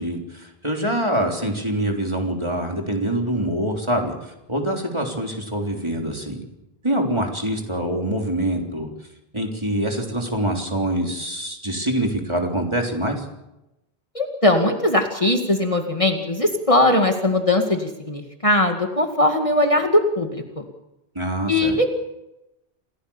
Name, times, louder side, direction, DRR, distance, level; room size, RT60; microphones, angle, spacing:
voice 1, 0.0-6.4 6.8-8.9 9.3-13.3 21.2-21.7, right 1 dB, 25° right, 1 dB, 3.7 m, -25 dB
voice 2, 14.1-20.6 21.5-21.9, left 1 dB, 30° left, 4 dB, 2.2 m, -20 dB
28.0 x 17.0 x 7.2 m, 0.91 s
omnidirectional pair, 1.0 m